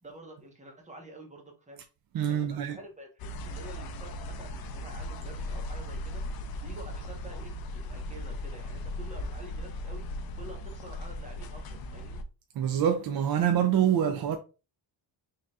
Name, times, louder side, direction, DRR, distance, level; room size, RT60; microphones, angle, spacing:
voice 1, 0.0-1.8 2.3-6.2 6.6-10.1 10.4-12.2, right 1 dB, 15° right, 1.2 m, -48 dB
voice 2, 2.1-2.8 12.6-14.4, right 9 dB, 50° right, 0.5 m, -25 dB
sound 1, 3.2-12.2, left 1 dB, 50° left, 0.6 m, -37 dB
4.1 x 3.6 x 2.4 m
cardioid pair, 140°, 49 cm